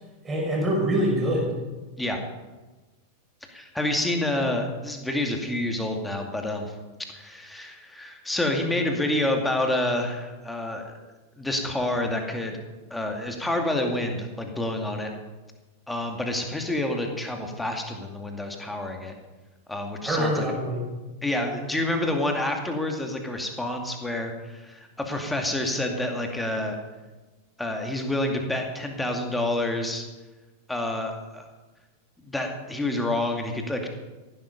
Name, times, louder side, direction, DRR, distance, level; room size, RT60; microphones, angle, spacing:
voice 1, 0.2-1.5 20.0-20.8, right 1 dB, 15° right, -2 dB, 5.6 m, -24 dB
voice 2, 3.5-6.7 7.1-11.0 11.4-12.6 12.9-15.1 15.9-19.1 19.7-20.4 21.2-26.8 27.6-30.0 30.7-31.5 32.2-33.9, left 1 dB, 5° left, 3 dB, 2.4 m, -28 dB
15.5 x 12.0 x 5.3 m, 1.2 s
figure-of-eight pair, 90°, 0 cm